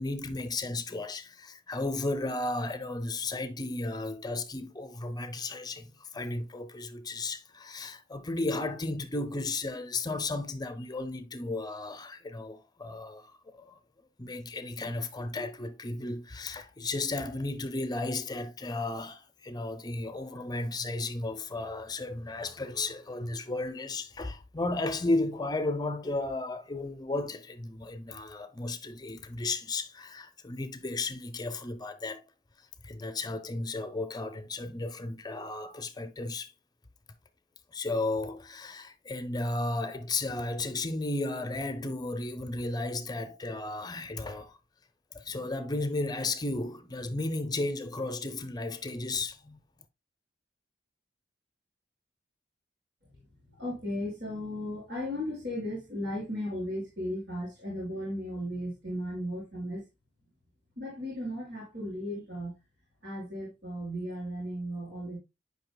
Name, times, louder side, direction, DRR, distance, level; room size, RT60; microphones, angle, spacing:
voice 1, 0.0-13.8 14.2-32.2 32.8-36.5 37.7-44.6 45.1-49.6, left 2 dB, 20° left, 0.7 m, -34 dB
voice 2, 53.2-59.8 60.8-62.5 63.0-65.2, equal, 70° right, 5.4 m, -36 dB
11.0 x 5.4 x 2.2 m
head